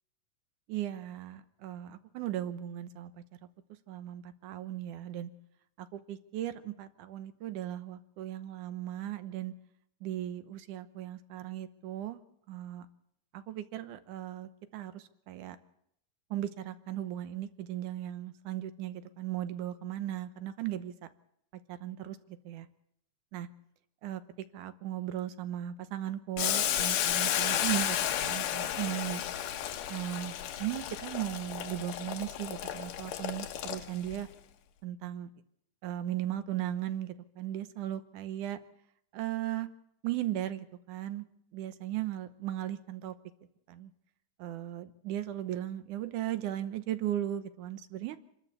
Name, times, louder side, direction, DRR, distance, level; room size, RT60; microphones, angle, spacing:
voice 1, 0.7-3.1 3.9-5.3 5.8-9.5 10.0-12.9 13.3-15.6 16.3-20.9 21.7-22.7 23.3-23.5 24.0-24.2 24.5-29.2 29.9-30.3 30.6-34.3 34.8-35.3 35.8-38.6 39.1-39.7 40.0-41.3 41.5-43.1 43.7-43.9 44.4-48.2, right 12 dB, 70° right, 12 dB, 2.4 m, -37 dB
Boiling, 26.4-34.2, left 11 dB, 80° left, 2.7 m, -33 dB
27.0 x 13.0 x 8.2 m, 0.74 s
omnidirectional pair, 3.9 m